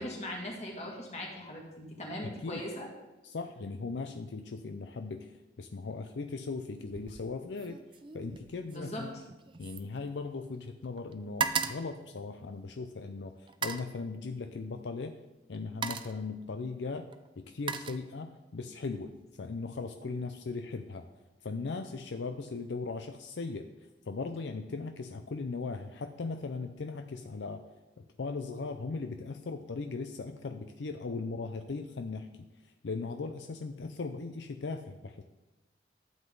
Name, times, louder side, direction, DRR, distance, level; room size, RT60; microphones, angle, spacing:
voice 1, 0.0-2.9 8.7-9.0, left 1 dB, 35° left, -1 dB, 2.2 m, -39 dB
voice 2, 2.2-2.6 3.2-7.8 8.1-9.1 9.6-15.2 15.5-17.1 17.4-19.1 19.4-21.1 21.4-23.7 24.1-27.7 28.0-35.2, left 4 dB, 75° left, 7 dB, 0.5 m, -38 dB
sound 1, 6.9-7.3 7.6-10.7 11.0-12.9 13.5-13.9 15.0-15.2 15.5-16.3 17.1-18.5 18.9-19.3, right 6 dB, 25° right, 0.4 m, -38 dB
12.5 x 7.9 x 3.9 m, 1.1 s
head